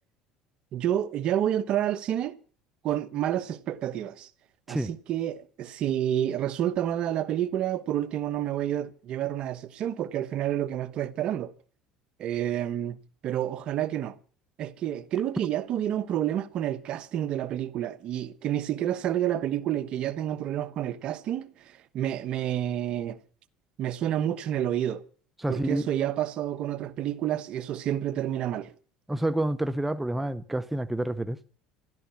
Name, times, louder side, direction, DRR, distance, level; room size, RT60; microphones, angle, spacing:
voice 1, 0.7-2.3 2.8-4.3 4.7-11.5 12.2-13.0 13.2-14.1 14.6-23.2 23.8-25.0 25.5-28.7, right 11 dB, 50° right, 1.1 m, -29 dB
voice 2, 25.4-25.8 29.1-31.4, right 1 dB, 5° right, 0.7 m, -28 dB
13.5 x 12.5 x 7.1 m
supercardioid pair, 110°, 2 cm